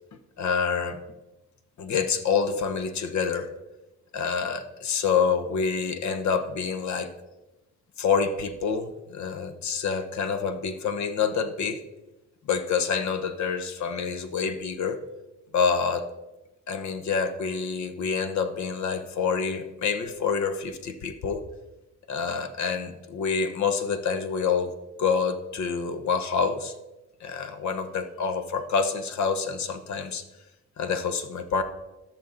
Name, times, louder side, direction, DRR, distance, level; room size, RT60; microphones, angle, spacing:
voice 1, 0.4-1.0 1.8-3.5 4.1-7.1 8.0-11.8 12.4-15.0 15.5-16.1 16.7-21.4 22.1-26.7 27.2-30.2 30.8-31.6, left 6 dB, 70° left, 10 dB, 1.0 m, -27 dB
14.0 x 6.0 x 3.9 m, 1.0 s
cardioid pair, 90°, 30 cm